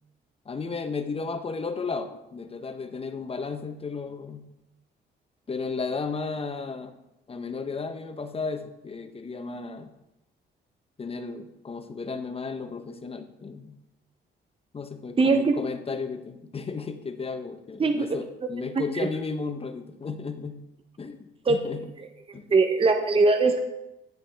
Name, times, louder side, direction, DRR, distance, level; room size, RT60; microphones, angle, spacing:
voice 1, 0.5-4.5 5.5-7.0 7.3-9.9 11.0-13.8 14.7-20.6 21.0-21.9 22.3-22.5, left 4 dB, 30° left, 8 dB, 0.8 m, -34 dB
voice 2, 15.2-15.5 17.8-18.0 18.7-19.1 21.4-21.6 22.0-22.1 22.5-23.6, right 3 dB, 25° right, 5 dB, 0.8 m, -21 dB
10.5 x 7.4 x 3.4 m, 0.94 s
cardioid pair, 90°, 20 cm